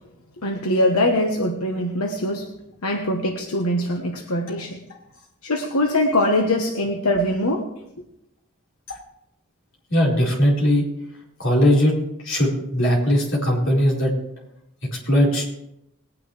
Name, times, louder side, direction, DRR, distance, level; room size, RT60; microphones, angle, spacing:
voice 1, 0.4-2.5 2.8-4.8 5.4-7.7, left 1 dB, 85° left, 1 dB, 1.3 m, -22 dB
voice 2, 9.9-10.8 11.4-11.9 12.2-14.1 14.9-15.5, equal, 60° left, -4 dB, 4.6 m, -19 dB
20.5 x 10.0 x 3.3 m, 0.82 s
head